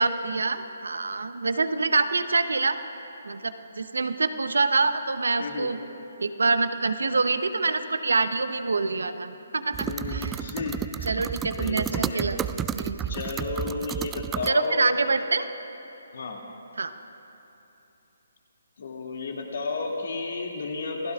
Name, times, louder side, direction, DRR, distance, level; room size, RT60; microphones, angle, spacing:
voice 1, 0.0-2.8 3.2-5.8 6.2-10.3 11.1-12.4 12.7-13.1 14.5-15.5 16.8-16.9, right 3 dB, 80° right, 10 dB, 0.9 m, -26 dB
voice 2, 5.4-5.7 9.8-11.2 11.6-12.3 13.1-14.9 16.1-16.4 18.8-21.1, left 3 dB, 65° left, 0 dB, 2.5 m, -32 dB
sound 1, 9.7-14.5, right 9 dB, 15° right, 0.3 m, -32 dB
27.0 x 16.5 x 2.5 m, 2.9 s
hypercardioid pair, 150°, 0 cm